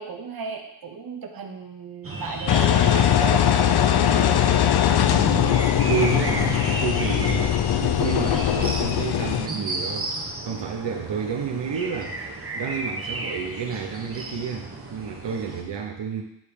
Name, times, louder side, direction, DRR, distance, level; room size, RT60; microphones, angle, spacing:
voice 1, 0.0-3.7, right 4 dB, 55° right, 3 dB, 1.0 m, -35 dB
sound 1, 2.0-15.6, right 2 dB, 30° right, 1.0 m, -34 dB
Engine, 2.5-9.5, left 10 dB, 65° left, 0.5 m, -20 dB
voice 2, 5.1-7.5 7.8-10.1 10.5-16.2, right 6 dB, 80° right, 2 dB, 0.8 m, -30 dB
9.0 x 3.1 x 5.0 m, 0.83 s
wide cardioid pair, 115°, 42 cm